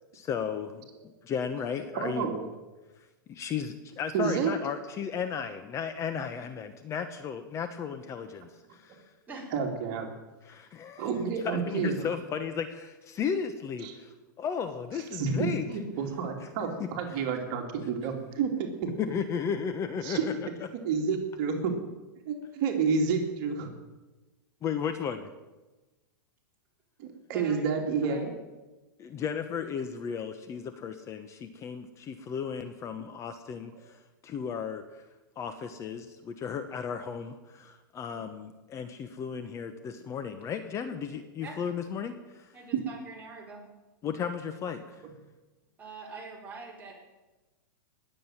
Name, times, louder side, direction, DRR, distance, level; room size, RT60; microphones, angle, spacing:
voice 1, 0.1-0.9 1.2-2.3 3.3-9.0 10.4-15.6 16.8-16.9 19.0-20.3 24.6-25.3 29.0-35.0 35.4-42.5 44.0-45.0, left 7 dB, 25° left, 9 dB, 1.0 m, -35 dB
voice 2, 1.9-2.5 4.1-4.5 9.5-10.1 11.0-12.1 13.8-13.9 15.1-18.9 20.0-20.3 20.8-21.7 22.3-23.7 27.0-28.3 33.0-33.1 42.7-42.8, right 5 dB, 45° right, 3 dB, 2.7 m, -29 dB
voice 3, 27.3-27.7 28.1-28.3 41.4-41.6 42.5-43.6 45.8-47.0, right 3 dB, 15° right, -3 dB, 4.9 m, -44 dB
19.5 x 7.8 x 9.0 m, 1.1 s
hypercardioid pair, 135°, 12 cm